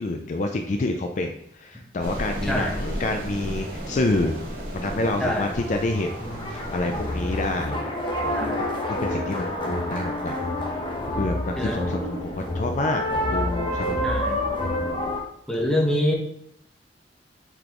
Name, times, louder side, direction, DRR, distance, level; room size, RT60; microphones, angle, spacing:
voice 1, 0.0-6.1 6.5-7.8 9.0-10.3 11.1-14.0, left 2 dB, 40° left, 4 dB, 0.4 m, -28 dB
sound 1, 2.0-7.7, equal, 55° right, 1.8 m, -34 dB
voice 2, 2.4-2.8 5.2-5.5 8.3-8.7 11.5-11.8 14.0-14.4 15.5-16.1, left 1 dB, 5° left, -2 dB, 1.0 m, -25 dB
sound 2, 3.8-15.2, left 1 dB, 25° left, 1.0 m, -29 dB
7.9 x 4.1 x 3.0 m, 0.72 s
head